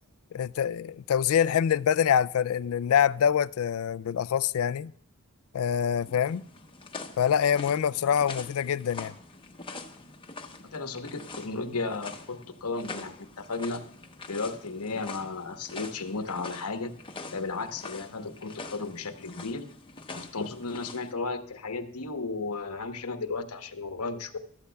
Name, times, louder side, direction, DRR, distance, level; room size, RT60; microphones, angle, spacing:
voice 1, 0.3-4.9 5.5-6.4 7.2-9.1, left 8 dB, 70° left, 0.3 m, -25 dB
sound 1, 6.0-21.1, left 3 dB, 25° left, 0.9 m, -44 dB
voice 2, 10.6-13.8 14.3-16.9 17.3-19.7 20.1-24.4, left 3 dB, 90° left, 1.1 m, -34 dB
15.0 x 12.5 x 2.3 m
head